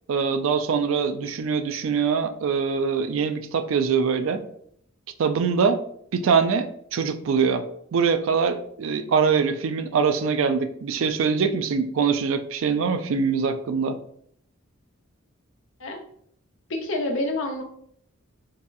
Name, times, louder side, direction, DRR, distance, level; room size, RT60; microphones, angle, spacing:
voice 1, 0.1-4.4 5.2-5.8 6.1-7.6 7.9-14.0, right 5 dB, 70° right, 9 dB, 0.3 m, -23 dB
voice 2, 16.7-17.6, left 2 dB, 60° left, 3 dB, 0.6 m, -27 dB
4.0 x 2.3 x 2.6 m, 0.66 s
head